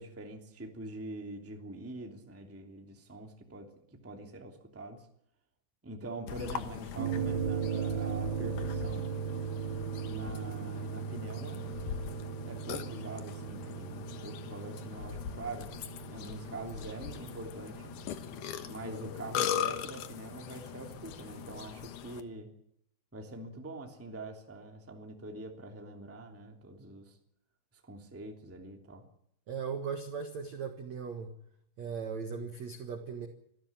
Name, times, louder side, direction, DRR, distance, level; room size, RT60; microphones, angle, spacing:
voice 1, 0.0-5.0 5.8-9.0 10.1-11.9 12.5-15.7 16.1-18.0 18.7-22.5 23.1-27.2 27.8-29.0, right 2 dB, 5° right, 3 dB, 1.5 m, -44 dB
Burping eructation, 6.3-22.2, left 9 dB, 90° left, 1.8 m, -40 dB
sound 1, 7.0-21.5, right 8 dB, 90° right, 3.7 m, -39 dB
voice 2, 29.5-31.3 31.8-33.3, right 6 dB, 65° right, 6 dB, 1.8 m, -38 dB
25.0 x 15.0 x 7.4 m, 0.74 s
omnidirectional pair, 5.7 m